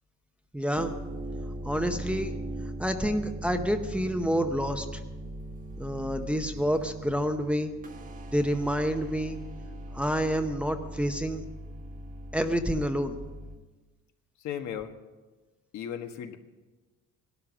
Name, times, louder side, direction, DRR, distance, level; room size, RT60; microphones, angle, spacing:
voice 1, 0.5-0.9 1.6-2.4 2.8-4.9 5.8-7.7 8.3-9.4 9.9-11.4 12.3-13.2, equal, 5° right, 5 dB, 0.8 m, -28 dB
sound 1, 0.6-13.6, right 1 dB, 25° right, 1.3 m, -40 dB
voice 2, 14.4-14.9 15.7-16.4, left 9 dB, 65° left, 6 dB, 1.5 m, -35 dB
18.0 x 12.5 x 6.1 m, 1.2 s
cardioid pair, 150°, 31 cm